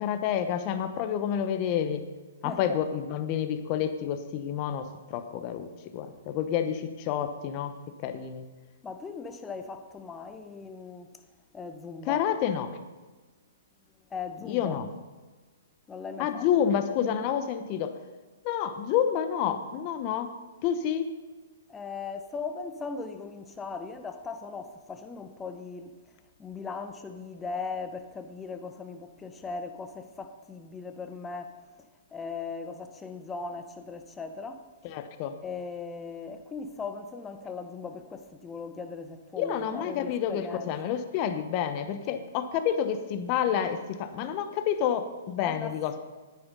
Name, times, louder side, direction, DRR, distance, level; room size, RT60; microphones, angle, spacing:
voice 1, 0.0-2.0 2.4-7.7 8.0-8.5 12.0-12.8 14.4-14.9 16.2-17.9 18.4-20.3 20.6-21.1 34.8-35.3 39.4-46.0, left 9 dB, 35° left, 1.0 m, -29 dB
voice 2, 8.8-11.1 11.5-12.2 14.1-14.8 15.9-16.5 21.7-26.0 26.4-31.6 32.1-34.6 35.4-40.7 45.4-45.7, left 4 dB, 15° left, 0.9 m, -38 dB
10.0 x 9.5 x 5.4 m
hypercardioid pair, 140°, 0 cm